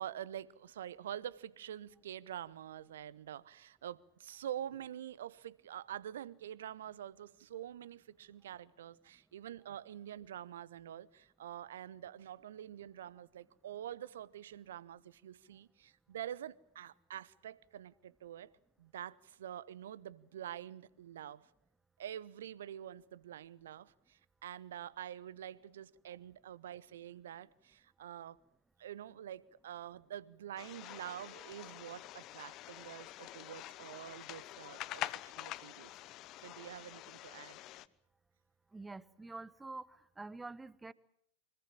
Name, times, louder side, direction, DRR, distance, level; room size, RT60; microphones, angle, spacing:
voice 1, 0.0-18.5 18.8-21.5 22.0-28.4 28.8-35.9 36.4-37.6, right 10 dB, 60° right, 0.9 m, -46 dB
sound 1, 30.6-37.9, left 15 dB, 35° left, 0.9 m, -46 dB
voice 2, 38.7-40.9, right 3 dB, 10° right, 0.9 m, -47 dB
25.0 x 22.5 x 7.5 m
figure-of-eight pair, 90°, 0 cm